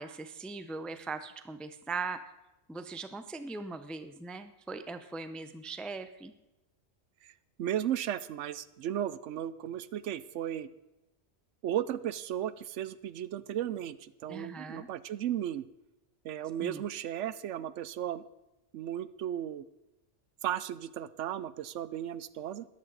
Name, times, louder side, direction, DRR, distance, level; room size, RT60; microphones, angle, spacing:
voice 1, 0.0-2.2 2.7-6.3 14.3-14.9 16.6-16.8, right 4 dB, ahead, 10 dB, 0.4 m, -40 dB
voice 2, 7.6-10.7 11.6-15.7 16.2-18.2 18.7-19.7 20.4-22.7, right 11 dB, 85° right, 16 dB, 0.9 m, -35 dB
13.5 x 11.0 x 4.0 m, 0.97 s
omnidirectional pair, 1.2 m